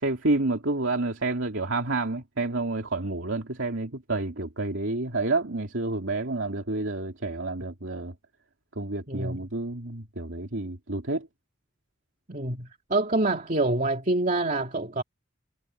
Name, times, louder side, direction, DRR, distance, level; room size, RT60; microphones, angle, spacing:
voice 1, 0.0-8.1 8.8-11.3, right 2 dB, 75° right, 2.7 m, -29 dB
voice 2, 9.1-9.4 12.3-15.0, right 2 dB, 40° right, 2.6 m, -26 dB
head